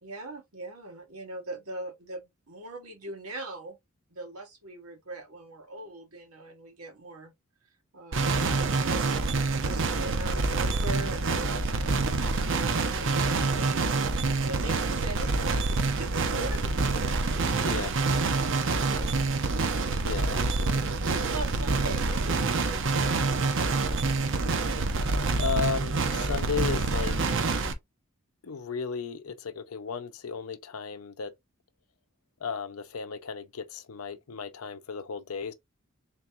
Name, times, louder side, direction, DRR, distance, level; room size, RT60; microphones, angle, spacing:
voice 1, 0.0-3.8 4.1-7.3 7.9-17.7 18.4-20.0 21.1-23.6, right 2 dB, 90° right, 1.6 m, -41 dB
sound 1, 8.1-27.7, right 3 dB, 60° right, 0.7 m, -27 dB
voice 2, 17.6-17.9 20.0-20.9 24.8-25.1 25.3-27.4 28.4-31.3 32.4-35.5, left 6 dB, 75° left, 0.6 m, -35 dB
3.9 x 3.5 x 2.7 m
head